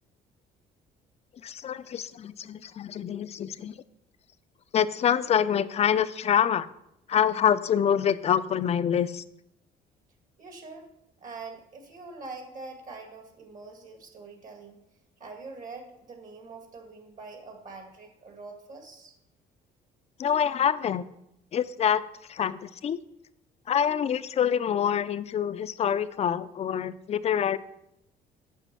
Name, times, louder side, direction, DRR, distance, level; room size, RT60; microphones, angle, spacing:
voice 1, 1.4-3.8 4.7-6.7 7.1-9.2 20.2-21.0 21.5-22.0 22.3-23.0 23.7-27.6, left 8 dB, 40° left, 14 dB, 0.5 m, -26 dB
voice 2, 10.4-10.9 11.2-14.8 15.2-19.1, right 3 dB, 50° right, 4 dB, 2.0 m, -44 dB
8.4 x 5.2 x 6.8 m, 0.82 s
cardioid pair, 110°, 17 cm